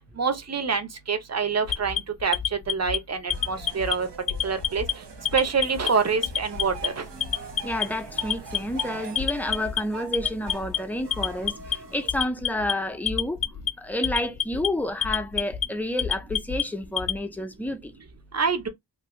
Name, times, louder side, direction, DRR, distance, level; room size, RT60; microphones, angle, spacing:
voice 1, 0.2-4.1 4.4-4.8 5.3-7.0 18.3-18.7, right 5 dB, 40° right, 0.7 m, -26 dB
Alarm, 1.7-3.0 3.3-3.9 4.3-4.9 5.3-5.9 6.2-6.9 7.2-7.8 8.2-8.8 9.2-9.8 10.1-10.8 11.1-11.8 12.1-12.7 13.1-13.7 14.0-14.7 15.0-15.7 16.0-17.2, left 8 dB, 55° left, 0.5 m, -26 dB
sound 1, 3.3-9.3, right 6 dB, 90° right, 0.7 m, -45 dB
sound 2, 6.5-12.1, right 4 dB, 75° right, 1.5 m, -42 dB
voice 2, 7.6-13.4 13.8-17.9, left 1 dB, 5° left, 0.4 m, -30 dB
2.6 x 2.6 x 3.1 m
wide cardioid pair, 80°, 41 cm